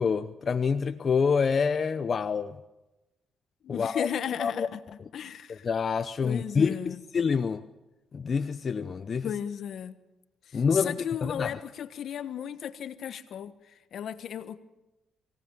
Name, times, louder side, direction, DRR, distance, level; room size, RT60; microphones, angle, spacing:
voice 1, 0.0-2.6 3.7-4.1 4.4-4.7 5.5-7.6 8.1-9.3 10.5-11.6, left 5 dB, 45° left, 0.8 m, -27 dB
voice 2, 3.6-4.8 5.1-5.7 6.2-7.0 9.2-10.0 10.5-14.6, left 9 dB, 65° left, 1.3 m, -35 dB
24.5 x 18.0 x 8.8 m
cardioid pair, 90°, 0 cm